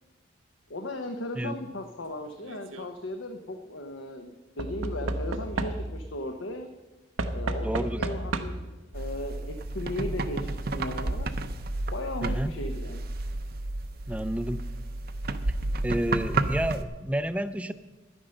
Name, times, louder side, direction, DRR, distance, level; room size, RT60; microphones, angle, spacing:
voice 1, 0.7-6.7 7.3-8.6 8.9-11.3 11.9-13.0, left 1 dB, 70° left, 5 dB, 0.9 m, -36 dB
Knock / Wood, 2.4-2.9 4.6-6.1 7.2-8.8 9.8-9.9 10.1-10.2, right 2 dB, 80° right, 0.9 m, -32 dB
voice 2, 7.6-8.1 12.2-12.5 14.1-14.6 15.5-15.6 15.8-17.7, right 1 dB, 5° right, 13 dB, 0.4 m, -30 dB
sound 1, 8.9-16.8, right 2 dB, 50° right, 0.6 m, -31 dB
11.0 x 9.9 x 6.5 m, 1.2 s
head